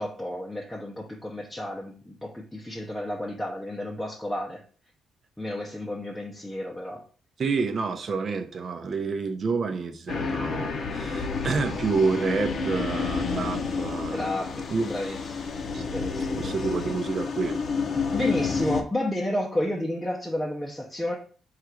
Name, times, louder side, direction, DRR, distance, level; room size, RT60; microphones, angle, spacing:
voice 1, 0.0-4.6 5.4-7.0 10.2-10.4 14.1-14.5 14.8-15.2 15.9-16.6 18.1-21.2, left 1 dB, 5° left, -3 dB, 0.7 m, -31 dB
voice 2, 7.4-14.2 14.7-14.9 15.7-15.8 16.4-17.6, right 4 dB, 45° right, 8 dB, 0.6 m, -28 dB
sound 1, 10.1-18.8, left 4 dB, 55° left, 0.6 m, -30 dB
3.8 x 2.4 x 4.4 m, 0.41 s
cardioid pair, 90°, 0 cm